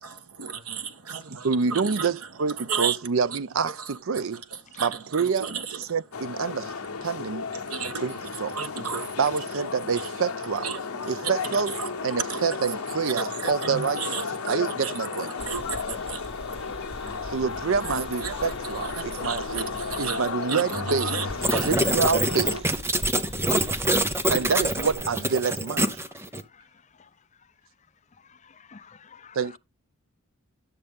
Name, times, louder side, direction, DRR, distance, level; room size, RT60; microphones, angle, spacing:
voice 1, 0.0-2.1 2.6-3.0 3.3-3.4 3.8-3.9 4.2-4.3 4.7-5.8 7.6-8.2 8.5-9.1 10.6-10.8 11.2-11.9 12.3-12.4 12.7-12.8 13.1-14.9 15.5-17.4 17.9-20.2 20.5-21.8, right 6 dB, 85° right, 1.3 m, -34 dB
voice 2, 1.4-4.4 4.8-5.5 5.8-6.7 7.0-7.5 8.0-8.6 9.2-10.7 11.1-15.3 17.2-19.7 20.0-21.3 21.6-22.7 24.3-26.0 29.3-29.6, right 5 dB, 65° right, 0.5 m, -27 dB
sound 1, 6.1-22.6, left 5 dB, 80° left, 0.9 m, -34 dB
sound 2, 15.4-20.4 20.7-24.9, equal, 25° right, 2.8 m, -41 dB
sound 3, 21.4-26.4, right 1 dB, 10° right, 0.7 m, -25 dB
voice 3, 28.3-29.6, left 5 dB, 30° left, 0.6 m, -50 dB
11.5 x 6.7 x 3.5 m
head